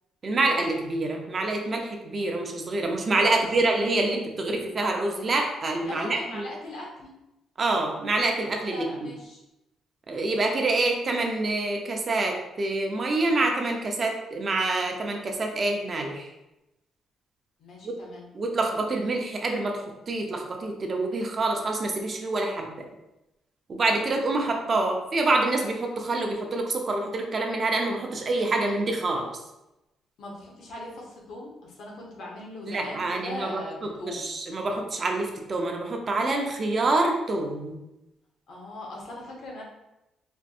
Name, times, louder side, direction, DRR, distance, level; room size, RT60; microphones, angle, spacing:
voice 1, 0.2-6.5 7.6-8.9 10.1-16.3 17.8-18.0 18.3-19.8 20.1-22.7 23.7-29.3 32.7-33.6 34.1-37.8, right 2 dB, 40° right, 2 dB, 0.6 m, -26 dB
voice 2, 3.0-3.4 5.8-7.2 8.7-9.4 17.6-18.3 30.2-34.3 38.5-39.6, left 1 dB, 70° left, -2 dB, 1.1 m, -40 dB
4.4 x 2.6 x 2.5 m, 0.93 s
cardioid pair, 90°, 0 cm